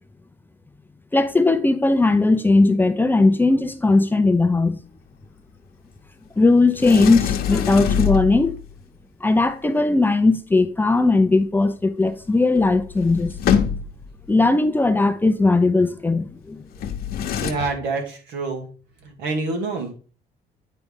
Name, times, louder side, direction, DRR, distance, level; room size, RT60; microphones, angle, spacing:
voice 1, 1.1-4.8 6.4-8.6 9.2-13.4 14.3-16.6, left 3 dB, 10° left, 0.6 m, -18 dB
Sliding door, 6.8-8.7 12.3-12.4 12.5-14.1 16.7-17.5, left 8 dB, 65° left, 1.1 m, -24 dB
voice 2, 17.4-18.7 19.0-19.9, right 3 dB, 80° right, 2.3 m, -27 dB
9.5 x 3.4 x 5.4 m
cardioid pair, 110°, 17 cm